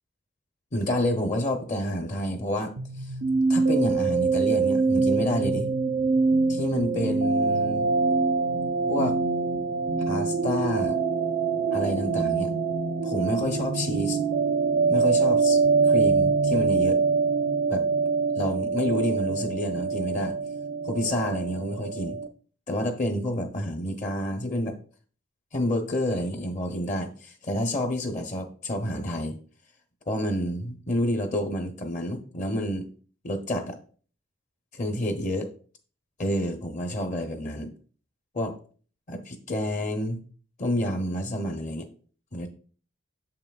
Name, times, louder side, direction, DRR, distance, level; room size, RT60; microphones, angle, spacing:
voice 1, 0.7-2.7 3.0-3.1 3.5-5.7 6.5-7.9 8.9-9.2 10.1-11.0 11.7-12.5 13.0-14.2 14.9-15.6 15.8-17.0 17.7-17.8 18.3-20.4 20.9-22.2 22.7-24.8 25.5-29.4 30.1-32.9 33.2-33.8 34.7-35.5 36.2-37.7 38.3-38.6 39.1-40.2 40.6-41.9 42.3-42.5, left 1 dB, 40° left, 5 dB, 0.7 m, -29 dB
sound 1, 2.8-22.3, right 4 dB, 65° right, 0.6 m, -24 dB
7.1 x 5.7 x 2.3 m, 0.42 s
head